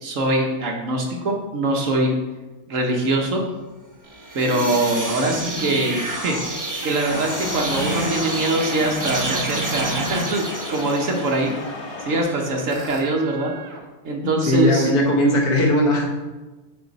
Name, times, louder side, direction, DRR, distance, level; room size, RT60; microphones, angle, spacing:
voice 1, 0.0-2.1 2.7-3.4 4.3-6.4 6.8-10.4 10.7-11.7 12.0-13.5 14.0-14.9, right 2 dB, 60° right, 1 dB, 1.3 m, -23 dB
sound 1, 4.0-10.2 10.5-13.8, right 2 dB, 80° right, 1.8 m, -34 dB
sound 2, 4.1-11.6, right 2 dB, 20° right, 0.6 m, -30 dB
sound 3, 7.1-12.2, left 4 dB, 65° left, 1.3 m, -34 dB
voice 2, 14.2-16.1, left 1 dB, 80° left, 0 dB, 1.7 m, -19 dB
8.0 x 4.8 x 4.1 m, 1.2 s
omnidirectional pair, 1.6 m